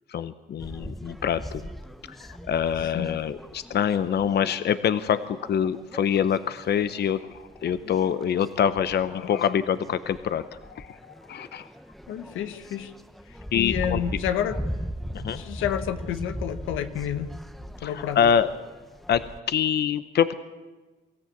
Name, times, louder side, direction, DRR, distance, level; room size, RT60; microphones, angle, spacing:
voice 1, 0.1-1.7 2.1-11.7 13.5-14.0 15.1-15.4 17.8-18.5 19.1-20.4, left 8 dB, 55° left, 13 dB, 0.8 m, -25 dB
sound 1, 0.6-19.4, equal, ahead, 0.8 m, -39 dB
voice 2, 12.1-12.9 13.3-14.6 15.3-17.3 17.8-18.2, left 10 dB, 90° left, 9 dB, 1.3 m, -30 dB
23.5 x 14.0 x 8.5 m, 1.3 s
cardioid pair, 90°, 20 cm